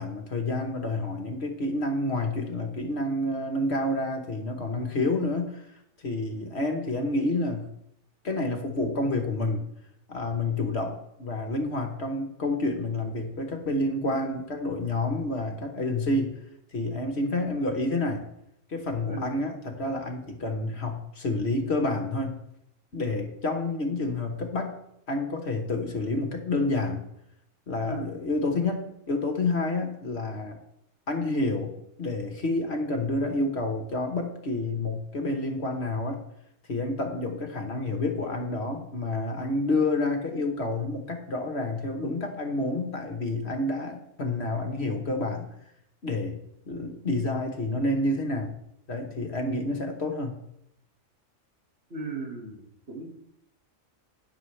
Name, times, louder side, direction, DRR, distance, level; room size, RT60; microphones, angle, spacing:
voice 1, 0.0-5.6 6.0-7.7 8.2-9.7 10.1-16.4 16.7-18.3 18.7-22.4 22.9-24.8 25.1-27.0 27.7-30.6 31.1-36.2 36.7-45.5 46.0-46.4 46.7-48.5 48.9-50.4, left 2 dB, 55° left, 4 dB, 1.4 m, -29 dB
voice 2, 51.9-52.6 52.9-53.1, right 3 dB, 50° right, 0 dB, 2.3 m, -35 dB
18.5 x 6.3 x 3.3 m, 0.79 s
omnidirectional pair, 1.4 m